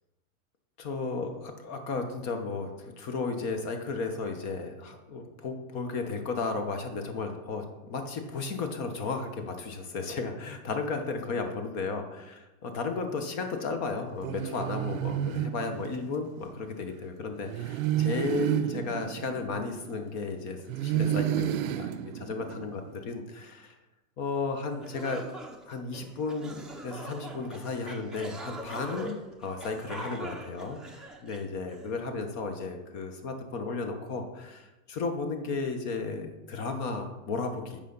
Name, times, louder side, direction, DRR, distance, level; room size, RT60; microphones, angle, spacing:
voice 1, 0.8-23.7 24.2-25.2 25.7-37.8, left 4 dB, 40° left, 6 dB, 1.2 m, -34 dB
sound 1, 14.2-16.3 17.5-20.2 20.7-22.9, right 11 dB, 70° right, 0.6 m, -31 dB
sound 2, 24.4-24.5 24.8-31.9, right 1 dB, ahead, 0.7 m, -43 dB
8.3 x 5.1 x 4.0 m, 1.1 s
supercardioid pair, 130°, 42 cm